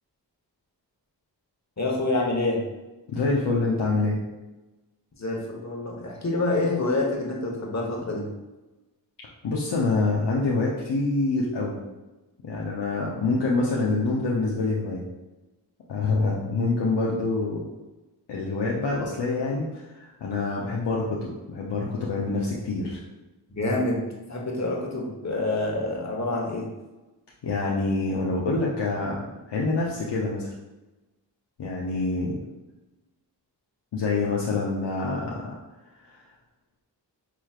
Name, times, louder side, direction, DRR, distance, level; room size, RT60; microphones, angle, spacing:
voice 1, 1.8-2.6 5.2-8.3 23.5-24.0 24.3-26.7, left 2 dB, 40° left, -1 dB, 1.2 m, -27 dB
voice 2, 3.1-4.2 9.4-11.8 12.4-15.0 15.9-17.7 18.3-23.0 27.4-30.5 31.6-32.4 33.9-35.5, left 3 dB, 70° left, -4 dB, 0.8 m, -26 dB
5.8 x 3.1 x 2.4 m, 1.1 s
cardioid pair, 45°, 44 cm